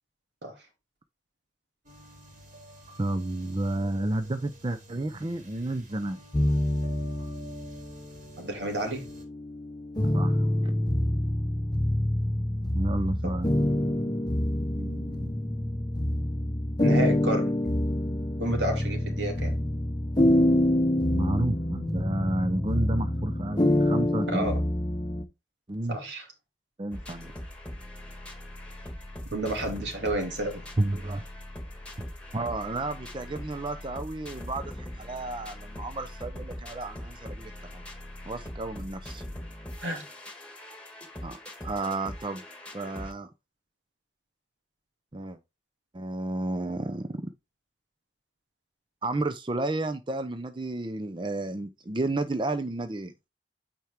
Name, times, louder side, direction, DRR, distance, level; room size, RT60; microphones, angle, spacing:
sound 1, 1.8-9.2, right 1 dB, 45° right, 3.2 m, -50 dB
voice 1, 3.0-6.2 10.1-10.7 12.7-13.5 21.1-24.5 25.7-26.0 26.8-27.3 30.8-31.2 32.3-37.8 38.3-39.2 41.2-42.4 42.7-43.3 45.1-45.4 45.9-47.2 49.0-53.1, right 2 dB, 25° right, 0.6 m, -31 dB
sound 2, 6.3-8.0 8.7-25.2, left 1 dB, 25° left, 0.8 m, -26 dB
voice 2, 8.4-9.0 13.2-13.3 14.7-15.3 16.8-17.5 18.4-19.5 24.3-24.6 25.9-26.3 29.3-30.6 39.8-40.0, right 1 dB, 75° right, 2.7 m, -31 dB
sound 3, 26.9-43.1, left 1 dB, 5° left, 1.5 m, -41 dB
8.9 x 4.3 x 3.6 m
head